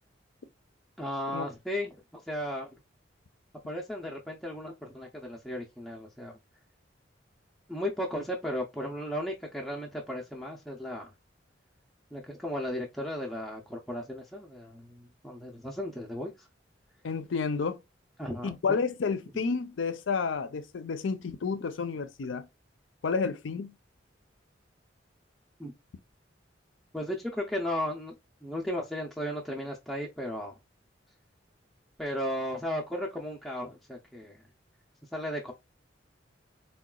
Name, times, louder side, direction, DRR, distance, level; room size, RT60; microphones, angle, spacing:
voice 1, 1.0-2.7 3.6-6.4 7.7-11.1 12.1-16.5 18.2-18.8 25.6-25.7 26.9-28.1 28.4-30.6 32.0-34.4 35.1-35.5, equal, ahead, 0.4 m, -35 dB
voice 2, 17.0-17.8 18.4-22.5 23.0-23.7, left 5 dB, 80° left, 0.5 m, -30 dB
3.7 x 2.2 x 2.3 m
head